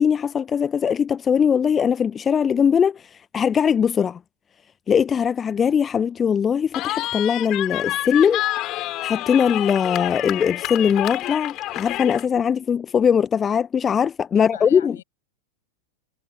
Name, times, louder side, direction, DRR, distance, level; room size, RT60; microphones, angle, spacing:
voice 1, 0.0-4.2 4.9-15.0, left 7 dB, 20° left, 0.5 m, -21 dB
Cheering, 6.7-12.3, left 16 dB, 35° left, 5.4 m, -28 dB
voice 2, 14.3-15.0, left 10 dB, 60° left, 7.6 m, -41 dB
figure-of-eight pair, 90°, 0 cm